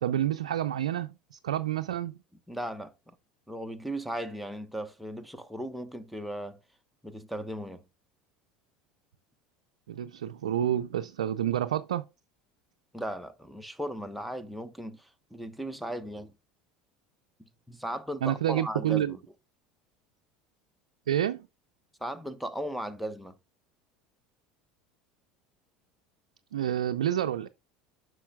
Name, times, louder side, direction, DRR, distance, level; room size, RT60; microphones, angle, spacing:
voice 1, 0.0-2.2 9.9-12.0 18.2-19.2 21.1-21.5 26.5-27.5, right 11 dB, 85° right, 0.4 m, -29 dB
voice 2, 2.5-3.1 3.5-6.6 7.0-7.8 12.9-16.4 17.7-19.2 22.0-23.3, right 1 dB, ahead, 1.0 m, -37 dB
9.8 x 6.3 x 2.3 m
hypercardioid pair, 80°, 4 cm